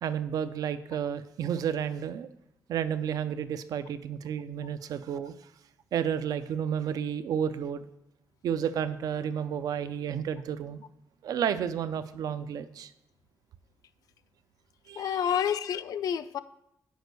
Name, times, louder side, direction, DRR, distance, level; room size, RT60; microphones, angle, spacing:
voice 1, 0.0-2.3 2.7-5.3 5.9-7.9 8.4-10.8 11.2-12.9 14.9-15.3, right 8 dB, 85° right, 12 dB, 0.4 m, -31 dB
voice 2, 15.0-16.4, left 9 dB, 80° left, 13 dB, 0.4 m, -29 dB
6.3 x 5.1 x 6.6 m, 0.81 s
wide cardioid pair, 140°, 6 cm